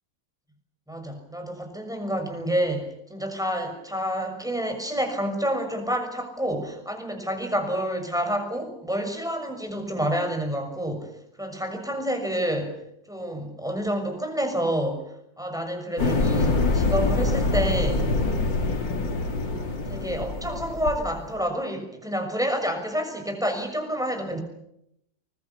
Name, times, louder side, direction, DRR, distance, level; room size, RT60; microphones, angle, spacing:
voice 1, 0.9-11.1 11.4-12.8 13.1-15.0 15.4-18.1 19.9-24.4, equal, ahead, 6 dB, 6.3 m, -28 dB
sound 1, 16.0-21.3, left 3 dB, 80° left, 3.6 m, -25 dB
24.0 x 22.0 x 8.7 m, 0.80 s
omnidirectional pair, 2.0 m